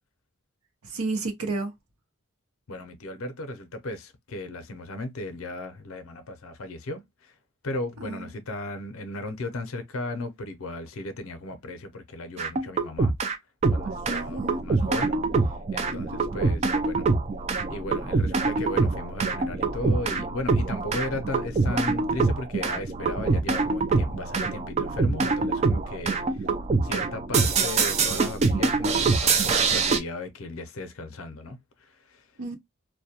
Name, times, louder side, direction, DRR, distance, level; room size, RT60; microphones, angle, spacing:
voice 1, 0.8-1.7 8.0-8.4 14.1-14.6 15.9-16.2 32.4-32.6, right 3 dB, 80° right, 0.7 m, -32 dB
voice 2, 2.7-7.3 7.6-13.1 13.7-17.1 17.7-26.5 26.8-32.2, left 2 dB, 70° left, 0.6 m, -36 dB
sound 1, 12.4-13.4 13.6-30.0, right 4 dB, 30° right, 0.3 m, -25 dB
2.2 x 2.1 x 2.8 m
head